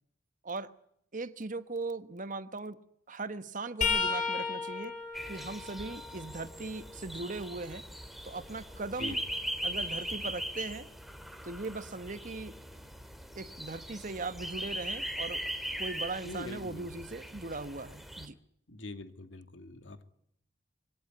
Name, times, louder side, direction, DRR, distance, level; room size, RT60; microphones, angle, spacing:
voice 1, 1.1-2.8 3.1-4.9 5.3-7.8 8.2-9.2 9.6-10.9 11.4-12.5 13.3-15.4 15.8-18.3, right 3 dB, 45° right, 12 dB, 1.2 m, -39 dB
sound 1, 3.8-7.6 8.1-10.0 13.0-13.1 14.4-14.6 15.9-16.0, left 5 dB, 45° left, 4.9 m, -36 dB
sound 2, 5.1-18.3, equal, ahead, 2.2 m, -40 dB
voice 2, 16.2-16.9 18.7-20.0, left 2 dB, 90° left, 8 dB, 2.4 m, -43 dB
22.5 x 17.0 x 9.8 m, 0.72 s
head